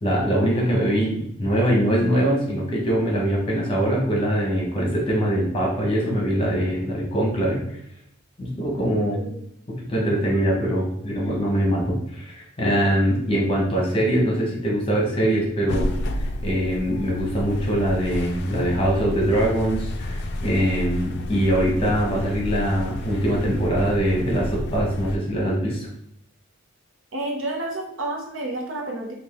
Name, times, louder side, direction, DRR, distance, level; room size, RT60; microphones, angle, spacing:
voice 1, 0.0-7.8 8.4-9.2 9.7-15.9 16.4-25.9, right 1 dB, 25° left, -3 dB, 1.1 m, -23 dB
sound 1, 15.7-25.2, left 1 dB, 55° left, 0.4 m, -30 dB
voice 2, 27.1-29.1, right 2 dB, 70° right, 0 dB, 0.9 m, -30 dB
4.3 x 2.5 x 3.5 m, 0.72 s
head